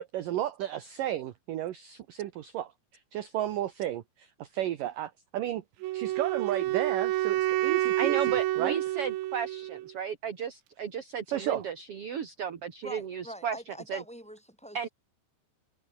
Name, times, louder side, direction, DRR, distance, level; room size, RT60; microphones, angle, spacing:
voice 1, 0.0-2.7 3.1-5.6 5.9-8.8 11.3-11.6, right 12 dB, 65° right, 2.4 m, -33 dB
Wind instrument woodwind instrument, 5.8-9.9, right 16 dB, 90° right, 3.4 m, -29 dB
voice 2, 8.0-13.6 13.9-14.0 14.7-14.9, right 7 dB, 45° right, 2.1 m, -34 dB
voice 3, 12.8-14.8, equal, ahead, 7.7 m, -44 dB
omnidirectional pair, 5.0 m